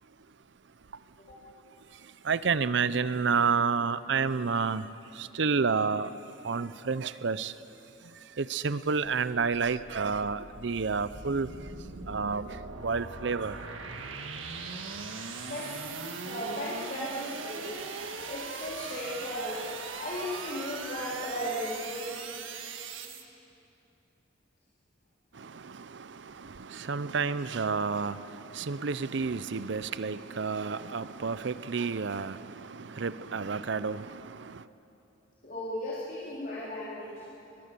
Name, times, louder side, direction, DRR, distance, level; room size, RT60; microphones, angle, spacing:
voice 1, 2.3-4.8 5.2-6.1 6.4-7.5 8.4-11.5 12.1-12.5 12.8-13.5 25.6-25.7 26.6-28.2 28.5-34.5, right 5 dB, 65° right, 0.6 m, -29 dB
sound 1, 9.0-23.2, right 4 dB, 90° right, 1.7 m, -40 dB
voice 2, 16.2-17.8 18.3-19.7 20.0-22.3 30.7-30.8 35.4-37.2, left 1 dB, 45° left, 3.7 m, -36 dB
23.0 x 20.5 x 6.9 m
head